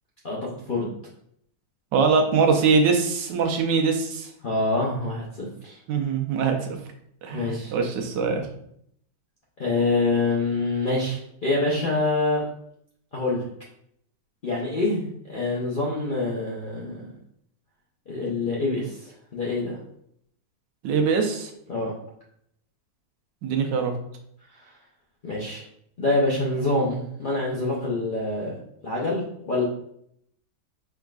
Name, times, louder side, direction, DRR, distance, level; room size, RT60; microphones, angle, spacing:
voice 1, 0.2-0.9 4.4-5.8 7.3-7.7 9.6-12.4 13.1-13.4 14.4-17.1 18.1-19.8 21.7-21.9 25.2-25.6 26.0-28.5 28.8-29.6, left 2 dB, 55° left, -5 dB, 0.5 m, -26 dB
voice 2, 1.9-4.3 5.9-6.6 7.2-8.5 20.8-21.5 23.4-23.9, right 5 dB, 80° right, 4 dB, 1.3 m, -22 dB
4.7 x 3.5 x 2.3 m, 0.70 s
omnidirectional pair, 1.9 m